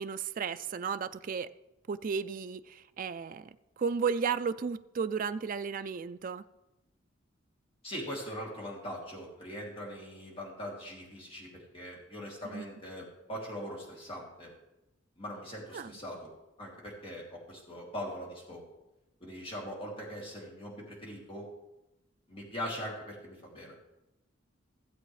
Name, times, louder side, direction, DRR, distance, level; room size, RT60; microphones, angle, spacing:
voice 1, 0.0-1.5 1.9-6.4 12.5-12.7 15.7-16.0, right 6 dB, 45° right, 11 dB, 0.4 m, -34 dB
voice 2, 7.8-11.5 11.7-14.5 15.2-16.2 16.6-18.6 19.2-21.5 22.3-23.7, equal, 30° left, -4 dB, 2.8 m, -41 dB
16.0 x 7.6 x 3.2 m, 0.95 s
head